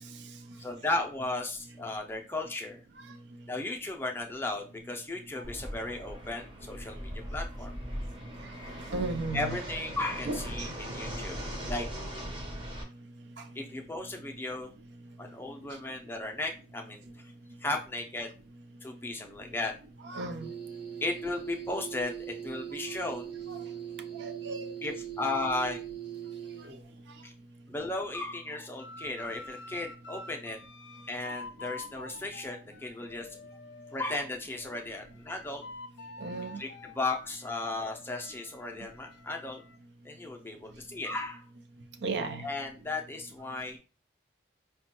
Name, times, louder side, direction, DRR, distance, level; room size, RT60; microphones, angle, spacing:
voice 1, 0.6-2.8 3.5-7.7 9.3-11.4 11.7-11.9 13.5-14.7 15.2-17.3 17.6-18.3 18.8-19.7 21.0-23.3 24.8-25.8 27.2-27.3 27.7-30.6 31.1-33.3 33.9-35.6 36.6-39.6 40.0-41.5 42.4-43.8, left 2 dB, 10° left, 0.4 m, -35 dB
Fixed-wing aircraft airplane, 5.4-12.8, equal, 30° right, 0.7 m, -39 dB
voice 2, 8.9-9.6 10.3-10.7 13.4-13.5 20.0-20.6 23.5-23.6 24.1-24.7 36.2-36.6 42.0-42.5, right 3 dB, 75° right, 0.5 m, -35 dB
sound 1, 20.4-26.9, right 9 dB, 60° right, 0.9 m, -41 dB
sound 2, 28.8-34.0 34.5-39.8, left 2 dB, 80° left, 0.4 m, -48 dB
5.1 x 2.2 x 2.8 m
head